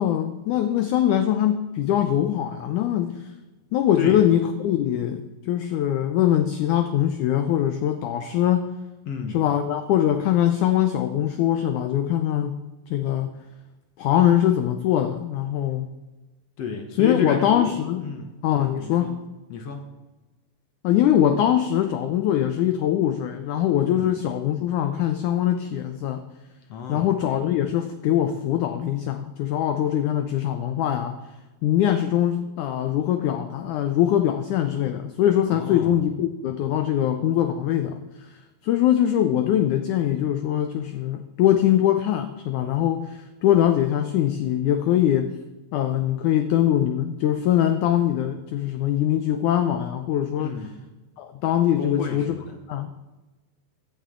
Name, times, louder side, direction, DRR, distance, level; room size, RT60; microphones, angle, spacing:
voice 1, 0.0-3.3 3.7-8.7 9.3-12.5 12.9-13.4 14.0-15.9 17.0-18.0 18.4-19.2 20.8-26.2 26.9-31.2 31.6-38.3 38.6-45.3 45.7-50.6 51.2-52.3 52.7-52.9, left 11 dB, 90° left, 8 dB, 1.7 m, -22 dB
voice 2, 9.1-9.4 16.6-17.7 18.0-19.1 19.5-19.8 23.9-24.1 26.7-27.1 35.5-36.0 50.4-50.7 51.8-52.5, left 5 dB, 70° left, 4 dB, 1.5 m, -31 dB
16.0 x 11.5 x 3.7 m, 1.1 s
omnidirectional pair, 4.4 m